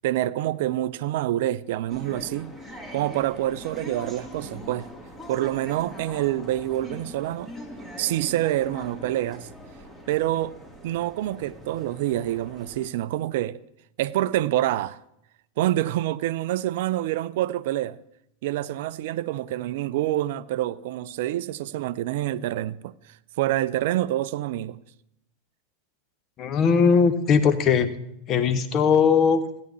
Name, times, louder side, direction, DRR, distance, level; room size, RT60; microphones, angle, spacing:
voice 1, 0.0-2.5 2.9-4.9 5.3-7.5 8.0-9.5 10.1-10.5 10.8-13.6 14.0-15.0 15.6-18.0 18.4-24.8, right 14 dB, 55° right, 0.3 m, -27 dB
sound 1, 1.9-12.9, equal, 10° left, 1.8 m, -42 dB
voice 2, 26.4-27.9 28.3-29.4, left 6 dB, 35° left, 0.9 m, -19 dB
15.5 x 9.4 x 3.1 m
figure-of-eight pair, 85°, 0 cm